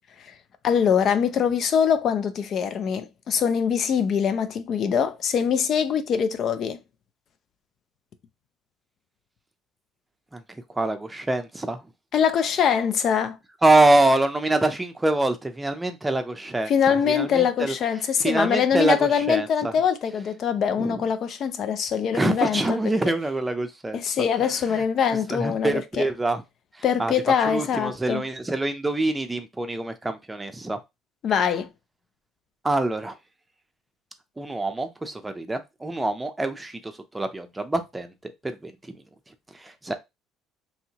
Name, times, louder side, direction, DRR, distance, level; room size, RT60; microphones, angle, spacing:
voice 1, 0.6-6.8 12.1-13.4 16.7-22.8 23.9-26.0 26.8-28.2 31.2-31.7, left 7 dB, 55° left, 0.4 m, -23 dB
voice 2, 10.8-11.8 13.6-17.7 18.2-19.7 20.8-21.0 22.1-24.0 24.7-24.8 25.3-26.4 27.0-27.1 27.5-30.8 32.6-33.1 34.4-39.0 39.5-40.0, right 2 dB, 15° right, 0.5 m, -25 dB
2.8 x 2.7 x 2.8 m
supercardioid pair, 85°, 0 cm